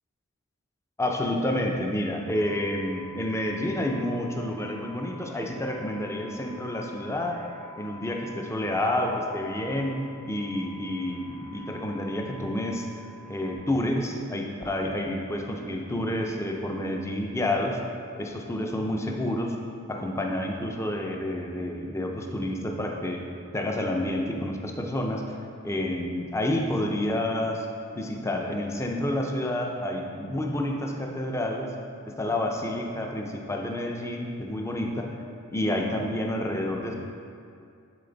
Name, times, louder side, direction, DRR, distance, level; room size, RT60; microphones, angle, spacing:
voice 1, 1.0-7.4 7.8-12.9 13.3-17.8 18.2-19.6 19.9-23.2 23.5-25.4 25.6-27.7 28.0-31.7 32.1-35.1 35.5-37.0, left 1 dB, 15° left, 1 dB, 0.5 m, -29 dB
sound 1, 2.3-13.5, left 2 dB, 40° right, 0.5 m, -47 dB
10.0 x 4.2 x 3.9 m, 2.4 s
head